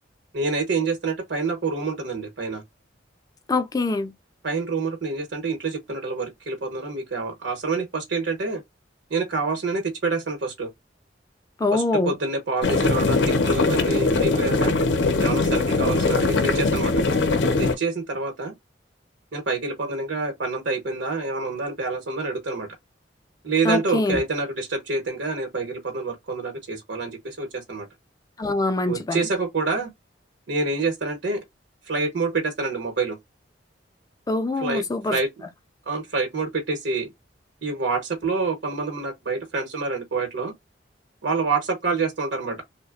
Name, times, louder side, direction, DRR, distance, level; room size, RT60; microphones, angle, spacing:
voice 1, 0.3-2.6 4.4-8.6 9.1-10.7 11.7-14.7 15.2-17.0 17.6-18.5 19.3-22.7 23.4-27.9 28.9-29.9 30.5-31.4 31.9-33.2 34.6-34.8 35.1-35.3 35.9-37.1 37.6-40.5 41.2-42.6, right 3 dB, 85° right, 0.9 m, -27 dB
voice 2, 3.5-4.1 11.6-12.2 23.6-24.2 28.4-29.3 34.3-35.2, left 2 dB, 20° left, 0.3 m, -24 dB
sound 1, 12.6-17.8, left 3 dB, 70° left, 0.5 m, -21 dB
2.8 x 2.1 x 2.3 m
head